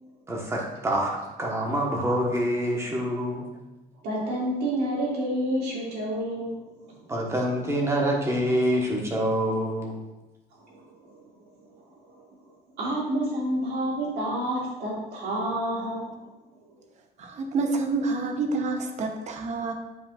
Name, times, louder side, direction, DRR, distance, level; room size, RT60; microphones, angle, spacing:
voice 1, 0.3-1.1 1.4-3.5 7.1-10.0, equal, 15° right, -1 dB, 1.2 m, -26 dB
voice 2, 4.0-6.7 10.6-11.3 11.6-11.7 12.1-12.2 12.8-16.1, right 1 dB, 85° right, -4 dB, 2.2 m, -29 dB
voice 3, 17.2-19.7, right 3 dB, 45° right, 4 dB, 0.8 m, -28 dB
8.4 x 5.1 x 2.4 m, 1.0 s
cardioid pair, 155°, 17 cm